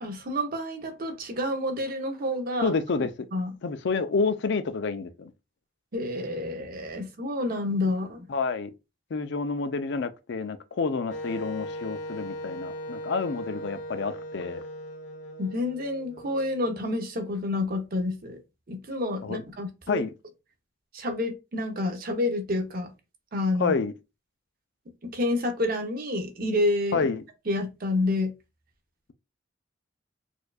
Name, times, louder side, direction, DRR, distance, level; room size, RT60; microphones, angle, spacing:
voice 1, 0.0-2.7 3.3-3.5 5.9-8.3 15.4-18.4 18.7-20.0 20.9-22.9 23.3-23.7 25.0-27.1 27.5-28.3, left 2 dB, 50° right, 0.8 m, -29 dB
voice 2, 2.6-3.3 3.6-5.3 8.3-8.7 9.1-14.6 19.2-19.4 19.9-20.1 23.6-23.9 26.9-27.2, left 4 dB, 65° left, 0.4 m, -29 dB
Wind instrument woodwind instrument, 11.1-16.9, equal, 90° left, 0.9 m, -38 dB
4.4 x 2.5 x 2.3 m
head